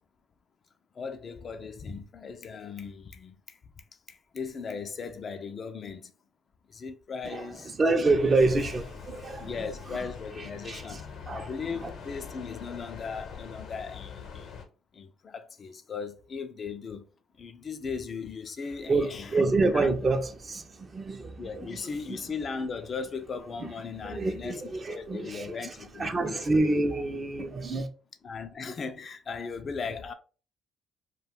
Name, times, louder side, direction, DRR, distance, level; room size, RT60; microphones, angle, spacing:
voice 1, 1.0-3.6 4.1-6.1 6.7-7.7 9.4-11.0 11.3-14.5 14.9-17.0 17.4-19.4 19.7-20.1 21.4-24.6 24.9-26.4 26.9-27.0 28.2-30.1, left 5 dB, 50° left, 0.4 m, -37 dB
voice 2, 7.7-9.7 10.4-11.5 11.8-11.9 18.9-21.8 22.1-22.2 23.6-23.7 24.0-25.5 26.0-27.9, right 3 dB, 40° right, 0.6 m, -27 dB
sound 1, 8.0-14.7, left 6 dB, 70° left, 0.8 m, -43 dB
2.4 x 2.2 x 3.4 m
supercardioid pair, 65°, 0 cm